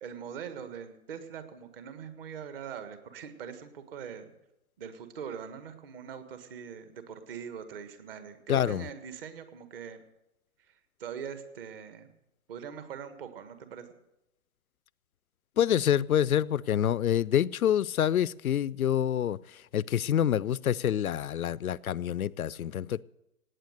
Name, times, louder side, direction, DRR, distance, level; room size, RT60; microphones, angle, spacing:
voice 1, 0.0-4.3 4.8-10.0 10.7-12.1 12.5-13.9, right 7 dB, 40° right, 1.7 m, -42 dB
voice 2, 8.5-8.9 15.6-23.0, left 10 dB, 85° left, 0.5 m, -27 dB
17.5 x 9.1 x 6.7 m
figure-of-eight pair, 130°, 42 cm